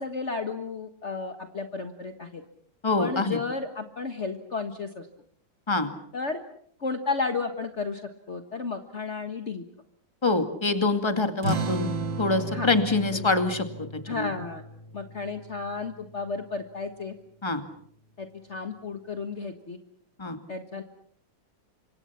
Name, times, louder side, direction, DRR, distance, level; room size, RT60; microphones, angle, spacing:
voice 1, 0.0-2.4 3.0-5.1 6.1-6.4 6.8-8.0 8.3-9.6 12.5-12.7 13.1-13.4 14.1-14.6 14.9-17.1 18.2-19.8 20.5-20.8, left 4 dB, 40° left, 7 dB, 1.8 m, -33 dB
voice 2, 2.8-3.4 5.7-5.9 10.2-14.3 17.4-17.6 20.2-20.4, left 3 dB, 15° left, 8 dB, 2.2 m, -25 dB
sound 1, 11.4-16.5, right 3 dB, 85° right, 2.5 m, -34 dB
30.0 x 26.0 x 5.8 m, 0.63 s
omnidirectional pair, 2.0 m